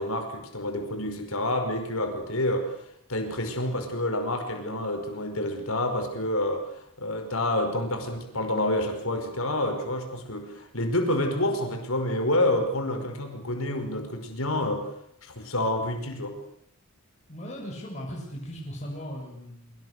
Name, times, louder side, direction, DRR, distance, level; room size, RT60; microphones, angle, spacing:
voice 1, 0.0-2.8 3.1-6.7 7.0-14.9 15.2-16.4, left 1 dB, 70° left, 6 dB, 5.2 m, -28 dB
voice 2, 17.3-19.9, equal, 30° left, -2 dB, 6.9 m, -38 dB
25.5 x 24.5 x 6.7 m, 0.71 s
head